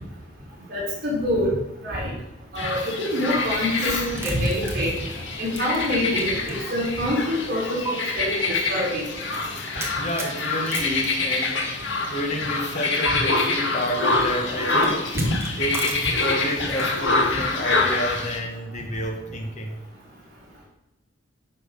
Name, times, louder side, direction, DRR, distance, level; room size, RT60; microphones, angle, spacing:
voice 1, 0.7-1.5 1.8-2.1 2.5-4.9 5.4-9.0 15.1-15.3, equal, 50° right, -7 dB, 4.6 m, -25 dB
sound 1, 2.6-18.4, left 3 dB, 65° left, 1.7 m, -26 dB
sound 2, 3.9-6.5 6.8-6.9 7.8-7.9 9.8-11.9 13.0-13.1 15.0-16.5, right 2 dB, 15° right, 1.6 m, -35 dB
voice 2, 9.3-15.0 15.6-19.8, equal, 35° left, 2 dB, 1.3 m, -30 dB
Fireworks, 14.8-18.1 18.7-18.8, left 1 dB, 85° left, 2.7 m, -40 dB
10.5 x 5.8 x 6.7 m, 0.95 s
head